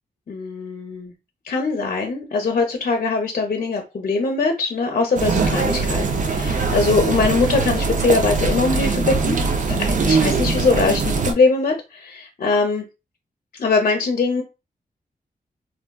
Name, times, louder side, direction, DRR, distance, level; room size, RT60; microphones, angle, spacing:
voice 1, 0.3-1.1 1.4-9.4 9.8-12.8 13.6-14.4, left 4 dB, 60° left, 3 dB, 0.6 m, -21 dB
sound 1, 5.2-11.3, right 4 dB, 55° right, 0.5 m, -21 dB
3.4 x 2.5 x 2.2 m, 0.27 s
wide cardioid pair, 100°, 16 cm